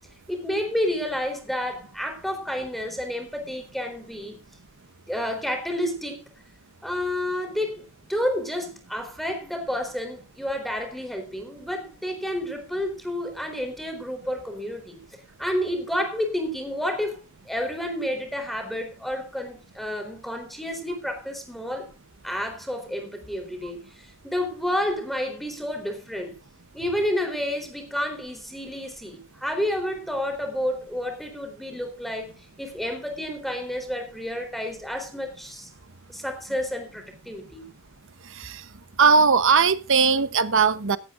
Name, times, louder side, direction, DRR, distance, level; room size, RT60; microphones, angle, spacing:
voice 1, 0.3-4.5 5.1-6.3 6.8-15.0 15.4-17.2 17.5-21.9 22.2-26.4 26.7-35.7 36.1-37.6, left 1 dB, ahead, 4 dB, 3.9 m, -30 dB
voice 2, 39.0-41.0, right 5 dB, 60° right, 13 dB, 1.0 m, -19 dB
16.0 x 14.5 x 2.6 m, 0.31 s
head